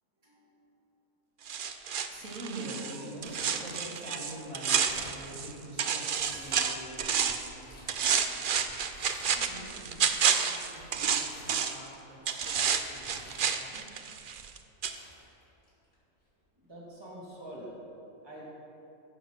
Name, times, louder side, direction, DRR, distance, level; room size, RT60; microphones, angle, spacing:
voice 1, 0.2-0.7 2.9-3.0 16.6-17.8 18.2-18.4, right 1 dB, 20° right, -6 dB, 2.5 m, -46 dB
sound 1, 1.5-5.5 5.8-7.5 7.9-11.9 12.3-14.6 14.8-15.0, right 7 dB, 55° right, 0.6 m, -30 dB
voice 2, 2.1-3.3 3.6-8.6 9.2-10.0 10.4-13.8, right 1 dB, 80° right, -7 dB, 3.7 m, -45 dB
Crumpling crinkling, 3.2-4.2 4.5-5.7 6.2-7.0 7.4-8.0 8.8-9.6 9.9-14.0 14.5-14.6 14.9-15.9 16.3-16.4 17.3-17.6, left 1 dB, 80° left, 3.9 m, -53 dB
15.0 x 6.9 x 5.9 m, 2.8 s
omnidirectional pair, 1.4 m